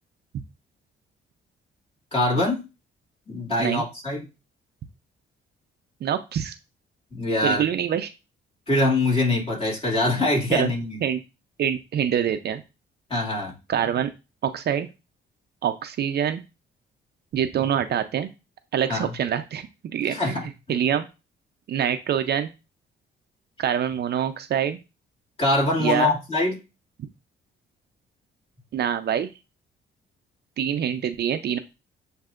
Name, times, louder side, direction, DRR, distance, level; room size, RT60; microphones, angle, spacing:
voice 1, 2.1-2.6 3.3-4.2 7.1-7.6 8.7-11.0 13.1-13.5 18.9-19.1 20.1-20.4 25.4-26.6, left 2 dB, 30° left, -3 dB, 2.1 m, -23 dB
voice 2, 6.0-6.6 7.4-8.1 10.5-10.7 11.0-11.2 11.6-12.6 13.7-14.1 14.4-14.9 15.6-16.4 17.3-18.3 18.7-19.7 19.9-21.1 21.7-22.5 23.6-24.8 25.8-26.2 28.7-29.3 30.6-31.6, right 9 dB, 55° right, 8 dB, 0.5 m, -25 dB
7.5 x 2.6 x 2.4 m, 0.27 s
cardioid pair, 90°, 20 cm